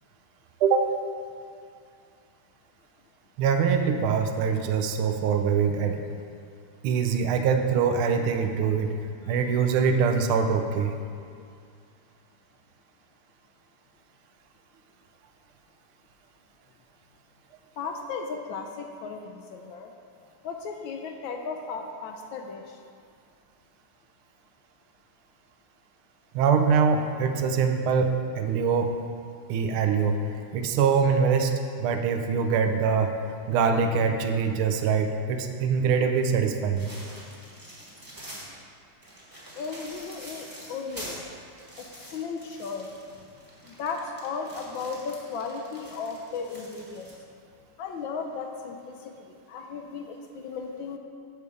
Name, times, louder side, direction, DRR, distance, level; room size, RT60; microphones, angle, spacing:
voice 1, 0.6-0.9 3.4-6.0 6.8-9.0 9.3-10.9 26.3-29.0 29.5-33.1 33.5-36.9, right 6 dB, 80° right, 6 dB, 1.5 m, -24 dB
voice 2, 17.8-19.9 20.4-22.8 39.6-41.2 41.8-42.9 43.6-47.1 47.8-51.0, left 5 dB, 75° left, 3 dB, 1.2 m, -35 dB
sound 1, 36.8-38.5 39.0-47.1, right 1 dB, 10° right, 1.1 m, -45 dB
6.6 x 4.8 x 6.9 m, 2.3 s
omnidirectional pair, 2.4 m